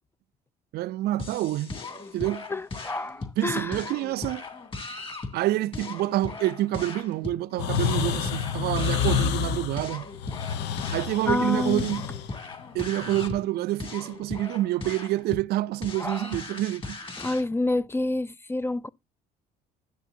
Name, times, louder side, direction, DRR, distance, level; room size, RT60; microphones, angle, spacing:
voice 1, 0.7-1.8 2.1-2.5 3.4-4.4 5.3-10.0 10.9-12.1 12.7-17.0, right 15 dB, 70° right, 0.4 m, -27 dB
sound 1, 1.2-17.4, left 3 dB, 30° left, 2.7 m, -38 dB
voice 2, 2.5-3.8 11.3-11.8 16.0-16.3 17.2-18.9, left 2 dB, 15° left, 0.4 m, -28 dB
sound 2, 7.6-13.3, left 8 dB, 85° left, 0.8 m, -29 dB
12.0 x 7.9 x 2.7 m
cardioid pair, 110°, 17 cm